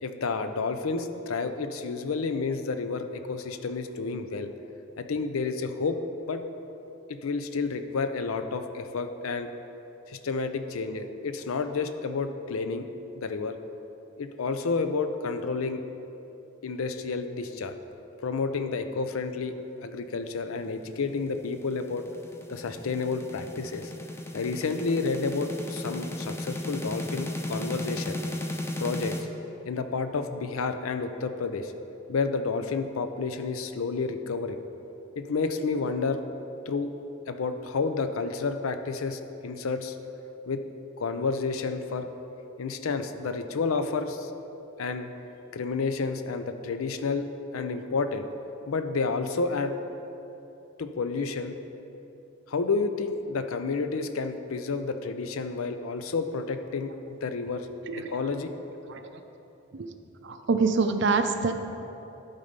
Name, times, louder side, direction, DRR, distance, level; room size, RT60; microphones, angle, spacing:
voice 1, 0.0-4.5 5.0-6.0 6.3-6.4 7.1-9.5 10.1-12.9 13.1-13.5 14.2-15.8 16.6-17.7 18.2-19.5 19.8-22.0 22.5-23.9 24.3-28.2 28.8-29.1 29.6-31.7 32.1-34.6 35.2-36.2 36.7-36.9 37.3-40.0 40.5-40.6 41.0-42.1 42.6-44.3 44.8-45.1 45.5-47.3 47.5-48.3 48.7-49.7 50.8-51.6 52.5-57.7 58.1-58.5, left 4 dB, 80° left, 9 dB, 0.5 m, -30 dB
sound 1, 21.1-29.2, left 1 dB, 10° left, 0.4 m, -35 dB
voice 2, 57.9-58.3 58.9-59.2 59.7-59.9 60.2-61.5, right 4 dB, 55° right, 7 dB, 0.5 m, -26 dB
12.0 x 4.1 x 5.2 m, 3.0 s
head